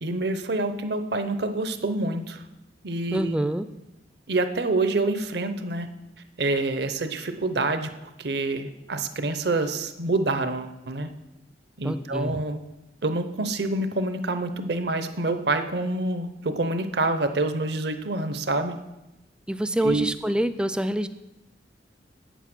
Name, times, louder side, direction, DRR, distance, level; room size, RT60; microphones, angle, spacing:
voice 1, 0.0-2.4 2.8-3.3 4.3-5.9 6.4-7.9 8.2-11.1 11.8-12.6 13.0-18.7 19.8-20.1, right 2 dB, 65° right, 9 dB, 0.8 m, -27 dB
voice 2, 3.1-3.6 11.8-12.4 19.5-21.1, right 1 dB, 5° right, 12 dB, 0.3 m, -26 dB
8.2 x 8.1 x 6.1 m, 0.97 s
head